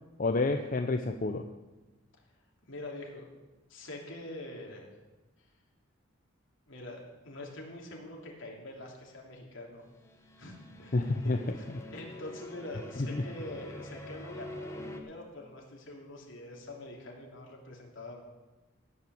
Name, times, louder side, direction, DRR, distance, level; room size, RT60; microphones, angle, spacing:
voice 1, 0.2-1.4 10.9-11.4 13.0-13.2, left 2 dB, 40° left, 6 dB, 0.6 m, -29 dB
voice 2, 2.7-3.2 3.7-4.9 6.7-9.9 10.4-18.2, left 1 dB, 70° left, -1 dB, 3.0 m, -45 dB
sound 1, 9.9-15.0, left 1 dB, 15° left, 1.1 m, -46 dB
17.5 x 5.8 x 7.8 m, 1.2 s
head